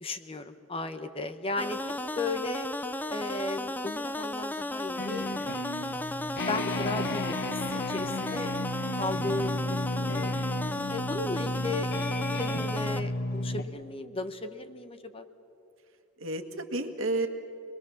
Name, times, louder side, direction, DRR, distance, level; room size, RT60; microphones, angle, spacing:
voice 1, 0.0-2.7 3.1-5.3 6.5-8.5 9.0-10.4 10.9-11.9 12.4-15.2, left 2 dB, 25° left, 9 dB, 1.0 m, -35 dB
sound 1, 1.6-13.0, left 1 dB, 10° left, 0.5 m, -34 dB
sound 2, 5.0-13.6, left 1 dB, 50° left, 1.0 m, -33 dB
voice 2, 10.7-11.1 16.2-17.3, right 2 dB, 65° right, 6 dB, 1.8 m, -32 dB
26.0 x 21.0 x 7.1 m, 2.7 s
head